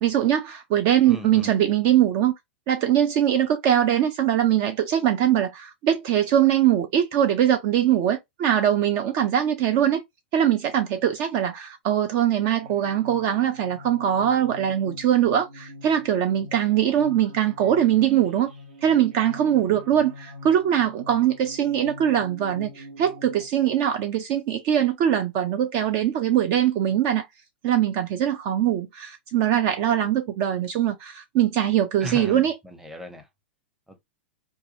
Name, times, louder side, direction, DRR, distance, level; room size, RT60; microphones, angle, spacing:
voice 1, 0.0-2.3 2.7-10.0 10.3-18.5 18.8-27.3 27.6-32.5, right 10 dB, 40° right, 0.4 m, -22 dB
voice 2, 1.1-1.6 32.0-33.3 33.9-34.0, equal, 5° right, 0.7 m, -37 dB
sound 1, 12.6-23.5, left 1 dB, 60° right, 0.9 m, -44 dB
2.6 x 2.3 x 2.6 m
figure-of-eight pair, 95°, 6 cm